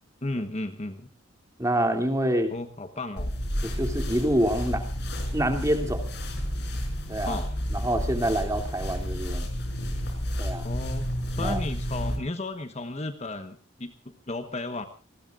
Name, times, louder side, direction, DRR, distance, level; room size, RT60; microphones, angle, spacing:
voice 1, 0.2-1.1 2.5-3.3 7.2-7.5 10.6-11.1 11.3-14.9, left 2 dB, 35° left, 8 dB, 1.2 m, -34 dB
voice 2, 1.6-2.5 3.6-4.8 5.3-6.0 7.1-7.4 7.7-9.5 10.4-10.7 11.4-11.6, right 1 dB, 15° right, 4 dB, 2.8 m, -26 dB
sound 1, 3.2-12.2, equal, 55° left, 6.3 m, -31 dB
28.5 x 20.0 x 2.5 m, 0.36 s
head